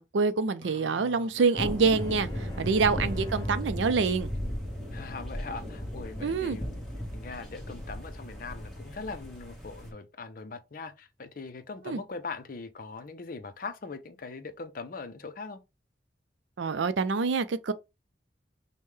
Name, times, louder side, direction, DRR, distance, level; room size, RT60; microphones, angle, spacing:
voice 1, 0.0-2.3 2.6-4.3 6.2-6.6 11.9-12.0 16.6-17.7, right 4 dB, 90° right, 0.5 m, -26 dB
voice 2, 0.6-1.7 2.8-3.1 4.9-6.8 7.1-15.6, left 4 dB, 50° left, 0.5 m, -41 dB
sound 1, 1.6-9.9, left 1 dB, ahead, 1.1 m, -37 dB
sound 2, 1.9-7.4, equal, 20° left, 0.8 m, -41 dB
5.4 x 2.2 x 3.2 m
head